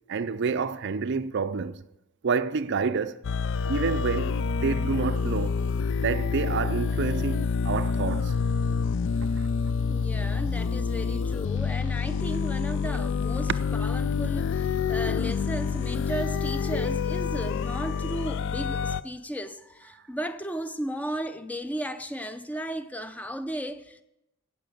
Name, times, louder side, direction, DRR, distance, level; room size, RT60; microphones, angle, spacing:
voice 1, 0.1-1.8 2.2-3.2 3.7-5.5 6.0-8.4 9.4-9.5, right 5 dB, 50° right, 0.5 m, -28 dB
sound 1, 3.2-19.0, left 5 dB, 55° left, 0.4 m, -27 dB
voice 2, 9.9-24.0, equal, 5° left, 0.5 m, -35 dB
16.0 x 5.9 x 7.9 m
head